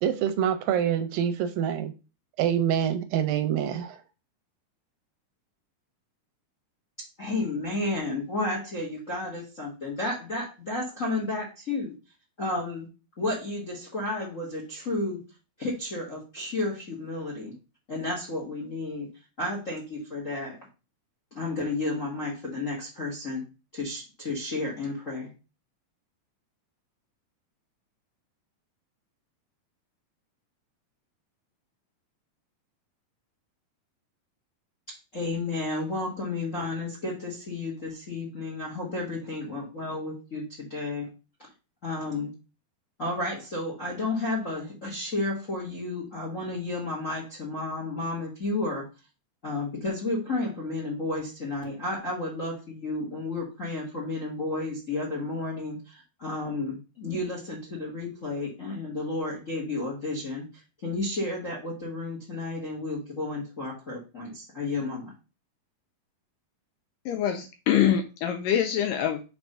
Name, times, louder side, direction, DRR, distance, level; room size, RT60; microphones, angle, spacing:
voice 1, 0.0-1.9 2.4-4.0, right 9 dB, 80° right, 2.2 m, -26 dB
voice 2, 7.2-11.9 12.4-12.9 13.2-15.2 15.6-17.5 17.9-19.1 19.4-20.6 21.3-23.4 23.7-25.3 34.9-41.1 41.8-42.3 43.0-48.9 49.4-65.1, left 2 dB, 45° left, 0.9 m, -32 dB
voice 3, 67.1-69.2, left 10 dB, 80° left, 2.1 m, -25 dB
5.2 x 4.7 x 5.6 m
omnidirectional pair, 4.4 m